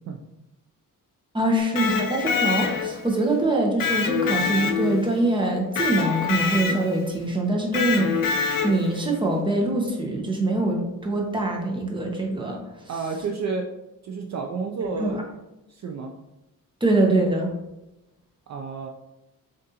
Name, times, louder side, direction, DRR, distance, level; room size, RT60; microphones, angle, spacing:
voice 1, 1.3-12.6 15.0-15.2 16.8-17.5, right 2 dB, 15° right, 0 dB, 0.8 m, -24 dB
Electric guitar, 1.6-3.1 3.8-5.2 5.8-7.0 7.7-9.0, left 6 dB, 65° left, 0.6 m, -25 dB
voice 2, 12.9-13.7 14.0-15.2 15.7-16.1 18.5-18.9, right 4 dB, 50° right, 3 dB, 0.4 m, -30 dB
7.4 x 2.5 x 2.8 m, 0.94 s
wide cardioid pair, 160°, 35 cm